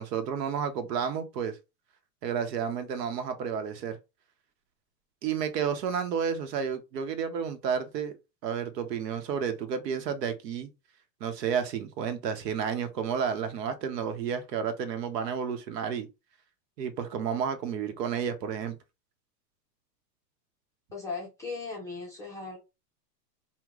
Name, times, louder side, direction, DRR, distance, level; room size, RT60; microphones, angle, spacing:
voice 1, 0.0-1.6 2.2-4.0 5.2-8.1 8.4-10.7 11.2-16.1 16.8-18.8, right 7 dB, 75° right, 1.0 m, -31 dB
voice 2, 20.9-22.6, left 4 dB, 5° left, 0.4 m, -37 dB
2.9 x 2.2 x 3.6 m
supercardioid pair, 140°, 50 cm